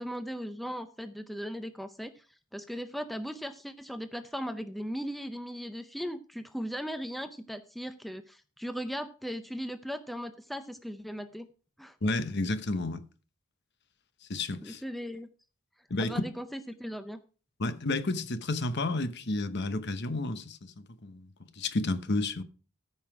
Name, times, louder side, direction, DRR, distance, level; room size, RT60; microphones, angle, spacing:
voice 1, 0.0-2.3 2.5-11.5 11.8-12.0 14.6-15.3 16.0-17.2, equal, ahead, 0.5 m, -38 dB
voice 2, 12.0-13.0 14.3-14.8 15.9-16.2 17.6-21.3 21.6-22.4, left 2 dB, 55° left, 1.0 m, -31 dB
14.0 x 5.7 x 4.8 m
head